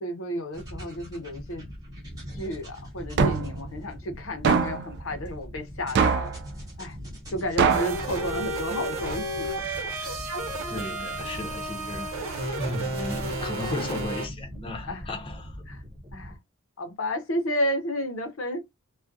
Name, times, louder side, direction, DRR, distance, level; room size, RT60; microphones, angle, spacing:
voice 1, 0.0-1.6 2.3-6.3 6.8-7.0 7.3-9.5 10.0-10.2 14.5-15.1 15.7-15.8 16.1-16.3 16.8-18.6, equal, 70° left, 0.7 m, -32 dB
sound 1, 0.5-16.4, equal, 15° right, 1.0 m, -41 dB
sound 2, 3.2-3.6 4.4-4.9 6.0-6.4 7.6-8.0, right 5 dB, 50° right, 0.3 m, -22 dB
sound 3, 7.7-14.3, right 1 dB, 75° right, 0.9 m, -32 dB
voice 2, 10.7-12.1 12.6-15.6, left 2 dB, 25° left, 0.6 m, -35 dB
2.3 x 2.1 x 2.6 m
head